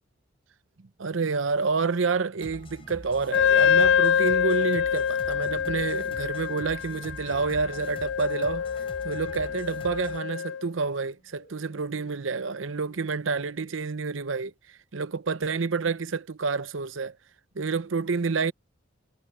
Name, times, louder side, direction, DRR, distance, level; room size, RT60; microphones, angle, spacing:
voice 1, 1.0-8.7 9.0-14.5 14.9-17.2 17.6-18.5, right 4 dB, 80° right, 0.7 m, -28 dB
sound 1, 2.4-10.2, left 1 dB, 25° left, 4.7 m, -44 dB
Wind instrument woodwind instrument, 3.3-10.6, left 8 dB, 65° left, 0.3 m, -25 dB
sound 2, 3.4-14.0, left 1 dB, 45° left, 4.4 m, -54 dB
head